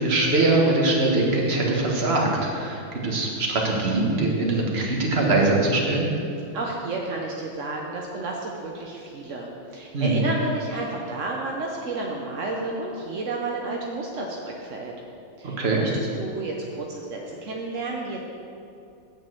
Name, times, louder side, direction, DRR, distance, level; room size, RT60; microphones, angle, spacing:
voice 1, 0.0-6.1 9.9-10.2 15.6-15.8, right 2 dB, 35° right, -1 dB, 1.3 m, -22 dB
voice 2, 6.5-14.9 15.4-18.2, right 2 dB, 65° right, -1 dB, 0.7 m, -31 dB
8.5 x 5.3 x 7.7 m, 2.7 s
omnidirectional pair, 2.3 m